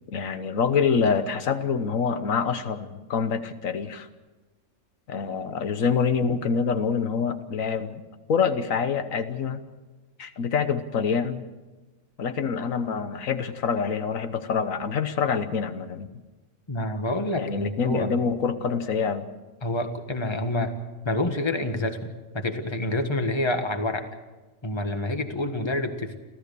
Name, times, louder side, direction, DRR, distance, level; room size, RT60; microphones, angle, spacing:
voice 1, 0.1-4.1 5.1-8.0 8.3-9.6 10.2-11.4 12.2-16.1 17.4-19.3, left 6 dB, 85° left, 10 dB, 1.5 m, -26 dB
voice 2, 16.7-18.1 19.6-20.7 21.0-22.0 22.3-24.0 24.6-26.2, left 1 dB, 20° left, 7 dB, 1.5 m, -27 dB
29.0 x 13.5 x 6.8 m, 1.2 s
omnidirectional pair, 1.4 m